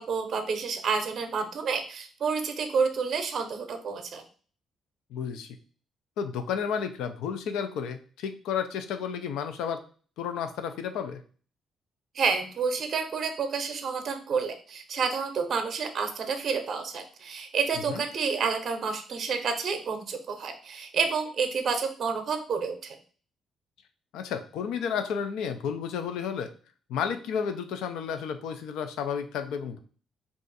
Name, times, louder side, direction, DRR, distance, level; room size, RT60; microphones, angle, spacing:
voice 1, 0.0-4.2 12.1-23.0, right 5 dB, 55° right, 6 dB, 0.6 m, -29 dB
voice 2, 5.1-5.5 6.2-9.8 10.2-11.2 17.9-18.0 24.1-26.5 26.9-29.8, left 7 dB, 90° left, 8 dB, 0.4 m, -32 dB
2.6 x 2.4 x 3.9 m, 0.41 s
cardioid pair, 90°, 0 cm